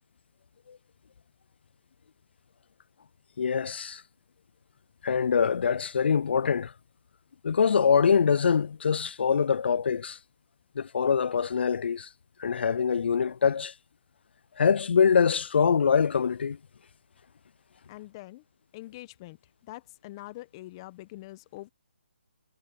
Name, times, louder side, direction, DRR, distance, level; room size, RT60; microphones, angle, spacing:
voice 1, 3.4-4.0 5.0-6.7 7.4-10.2 10.8-12.1 12.4-13.7 14.6-16.6, left 6 dB, 60° left, 0.3 m, -24 dB
voice 2, 17.9-18.4 18.7-21.7, left 18 dB, 25° left, 1.0 m, -44 dB
hypercardioid pair, 155°, 6 cm